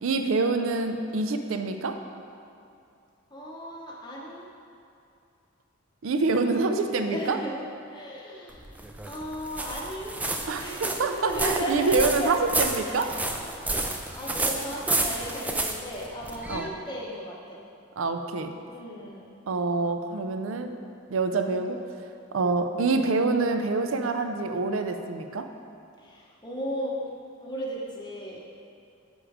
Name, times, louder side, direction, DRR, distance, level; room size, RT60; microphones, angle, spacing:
voice 1, 0.0-2.0 6.0-7.4 10.5-10.7 11.0-13.1 16.5-16.7 18.0-18.5 19.5-20.7 21.1-21.8 22.3-25.5, right 3 dB, 75° right, 7 dB, 0.5 m, -26 dB
voice 2, 3.3-4.5 7.1-8.7 9.0-10.2 10.6-12.3 12.8-13.7 14.1-17.6 18.6-19.3 26.0-27.1 27.4-28.5, equal, 20° left, -5 dB, 0.8 m, -35 dB
sound 1, 8.5-16.7, right 2 dB, 5° right, 0.3 m, -30 dB
7.2 x 5.2 x 4.9 m, 2.5 s
head